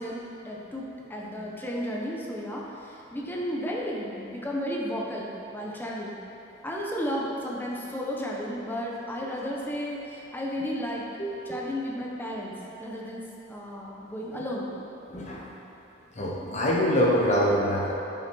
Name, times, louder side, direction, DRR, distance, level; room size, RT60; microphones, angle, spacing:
voice 1, 0.0-6.2 6.6-11.1 11.4-12.5 12.8-13.2 13.5-14.7, equal, 10° left, -3 dB, 1.3 m, -33 dB
voice 2, 11.2-11.6 15.1-15.4 16.2-17.9, equal, 40° left, -3 dB, 1.2 m, -25 dB
10.0 x 7.1 x 4.7 m, 3.0 s
head